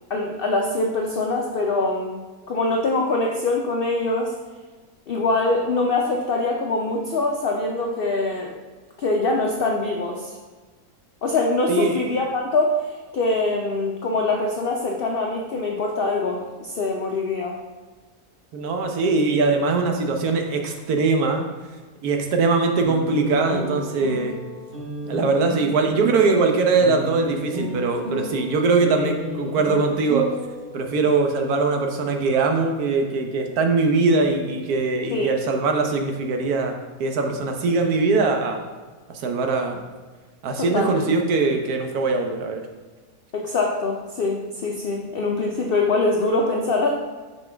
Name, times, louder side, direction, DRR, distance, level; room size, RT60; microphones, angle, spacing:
voice 1, 0.1-2.2 2.5-4.3 5.1-8.5 9.0-10.3 11.2-17.6 29.0-29.1 35.1-35.3 40.6-41.1 43.3-46.9, left 2 dB, 85° left, 1 dB, 0.5 m, -23 dB
voice 2, 11.7-12.0 18.5-21.4 22.0-24.4 25.0-30.2 30.7-36.7 37.0-38.6 39.1-39.8 40.4-42.6, right 3 dB, 70° right, 4 dB, 1.2 m, -21 dB
sound 1, 22.8-30.9, right 1 dB, 40° right, 1.5 m, -32 dB
5.4 x 5.2 x 3.4 m, 1.3 s
omnidirectional pair, 1.7 m